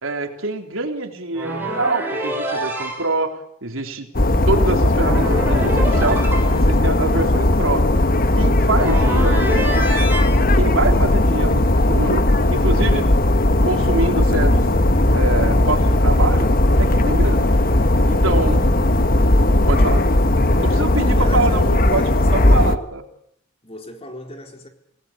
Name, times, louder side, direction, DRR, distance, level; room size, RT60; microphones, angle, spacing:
voice 1, 0.0-7.9 8.4-10.0 10.4-13.1 13.6-14.6 15.1-16.5 16.8-17.5 18.0-18.7 19.7-20.0 20.6-23.0, right 2 dB, 85° right, 3.6 m, -25 dB
sound 1, 1.3-3.1 5.0-6.7 8.7-10.3, right 1 dB, 10° right, 7.1 m, -26 dB
sound 2, 4.1-22.8, left 1 dB, 45° left, 1.3 m, -17 dB
voice 2, 21.0-22.9 23.6-24.7, left 1 dB, 30° left, 4.1 m, -35 dB
27.0 x 19.0 x 8.7 m
head